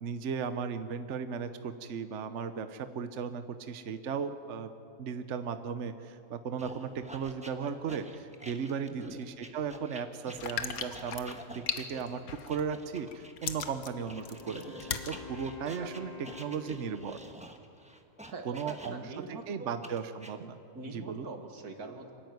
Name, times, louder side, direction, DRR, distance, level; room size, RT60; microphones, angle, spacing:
voice 1, 0.0-4.7 5.0-12.2 12.5-14.6 14.9-16.1 16.4-17.2 18.4-19.1 19.5-20.6 20.8-21.2, right 6 dB, 55° right, 10 dB, 1.1 m, -36 dB
sound 1, 6.6-13.5 14.1-19.2 19.8-20.3, right 1 dB, 5° right, 1.2 m, -49 dB
sound 2, 10.3-12.8 13.1-15.2 15.7-15.8, left 7 dB, 75° left, 1.6 m, -37 dB
Wind instrument woodwind instrument, 13.6-17.4, left 4 dB, 25° left, 2.2 m, -48 dB
voice 2, 18.3-19.7 20.7-22.1, right 3 dB, 85° right, 5 dB, 2.4 m, -43 dB
25.5 x 14.0 x 9.5 m, 2.5 s
omnidirectional pair, 1.6 m